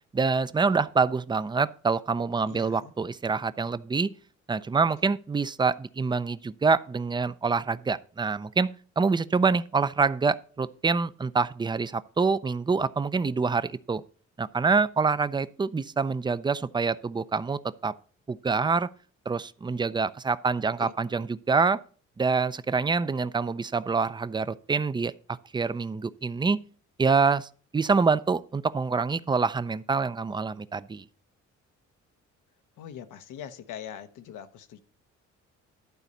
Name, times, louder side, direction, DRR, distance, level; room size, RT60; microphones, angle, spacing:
voice 1, 0.1-4.1 4.5-8.7 9.0-14.0 14.4-17.9 18.3-18.9 19.3-21.8 22.2-25.1 25.5-26.6 27.0-31.0, right 4 dB, 15° right, 0.4 m, -26 dB
voice 2, 2.5-2.9 20.8-20.9 32.8-34.8, left 9 dB, 85° left, 1.0 m, -42 dB
11.5 x 4.1 x 6.6 m
cardioid pair, 90°, 30 cm